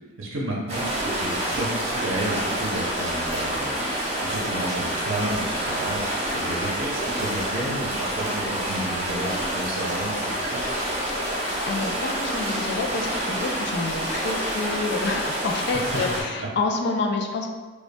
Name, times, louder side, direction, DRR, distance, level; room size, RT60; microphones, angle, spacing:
voice 1, 0.2-3.8 4.2-6.1 6.3-10.7 16.4-16.5, right 1 dB, 80° right, -3 dB, 0.6 m, -32 dB
sound 1, 0.7-16.2, right 1 dB, 30° right, 0.9 m, -28 dB
voice 2, 11.1-17.5, left 3 dB, 60° left, 2 dB, 0.4 m, -28 dB
5.0 x 2.3 x 2.2 m, 1.4 s
head